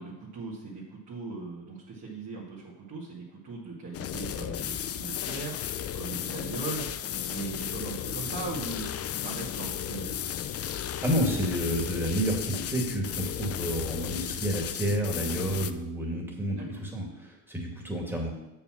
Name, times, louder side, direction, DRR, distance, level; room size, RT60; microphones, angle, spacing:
voice 1, 0.0-10.2 16.6-16.8, right 4 dB, 45° right, -6 dB, 2.3 m, -39 dB
sound 1, 3.9-15.7, left 10 dB, 40° left, 0.5 m, -34 dB
voice 2, 11.0-18.3, equal, 5° right, -1 dB, 2.5 m, -30 dB
6.9 x 5.7 x 6.0 m, 0.93 s
cardioid pair, 95°, 40 cm